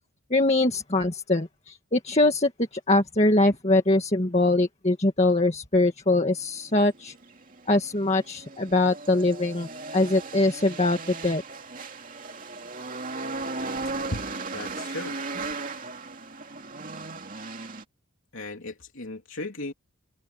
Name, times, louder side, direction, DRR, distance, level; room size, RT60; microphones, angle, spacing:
voice 1, 0.3-7.1 7.7-11.4, left 2 dB, 30° left, 1.9 m, -23 dB
sound 1, 6.4-17.8, right 3 dB, 35° right, 2.7 m, -36 dB
voice 2, 14.5-15.2 18.3-19.7, left 2 dB, 60° left, 3.5 m, -36 dB
head